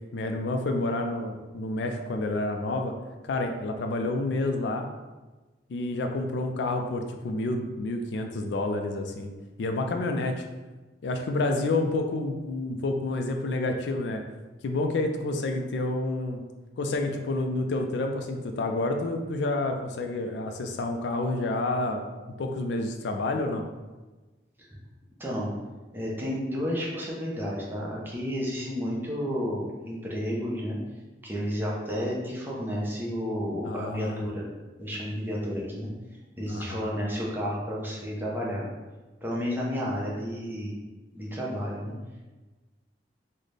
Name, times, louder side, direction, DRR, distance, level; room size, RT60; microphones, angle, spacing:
voice 1, 0.1-2.9 3.2-4.9 5.7-9.3 9.6-10.4 11.0-14.2 14.6-16.4 16.8-22.0 22.4-23.7 33.6-34.3 36.5-36.9, left 2 dB, 75° left, 4 dB, 0.4 m, -29 dB
voice 2, 25.2-25.5 25.9-30.8 31.2-34.4 34.8-35.9 36.4-38.7 39.2-40.7 41.1-41.9, equal, 10° right, -5 dB, 0.6 m, -31 dB
3.9 x 2.1 x 3.2 m, 1.2 s
head